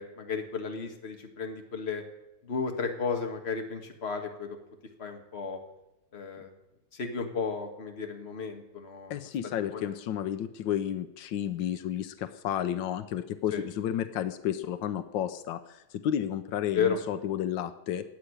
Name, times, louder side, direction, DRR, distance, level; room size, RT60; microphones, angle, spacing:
voice 1, 0.0-2.0 2.4-4.6 5.0-5.6 6.1-6.5 6.9-9.9 13.5-13.6 16.7-17.0, left 5 dB, 35° left, 4 dB, 1.7 m, -33 dB
voice 2, 9.1-18.0, left 10 dB, 85° left, 11 dB, 1.5 m, -32 dB
13.5 x 8.5 x 9.8 m, 0.93 s
omnidirectional pair, 2.0 m